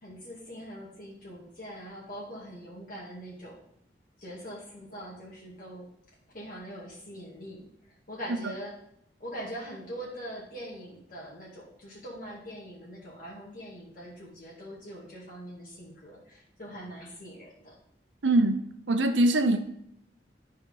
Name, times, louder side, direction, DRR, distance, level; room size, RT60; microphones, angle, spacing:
voice 1, 0.0-3.6 4.2-5.9 6.3-8.7 9.2-17.8, equal, 50° left, 2.1 m, -42 dB
voice 2, 18.2-18.6 18.9-19.6, right 2 dB, 80° right, 0.7 m, -22 dB
11.0 x 4.4 x 5.4 m
head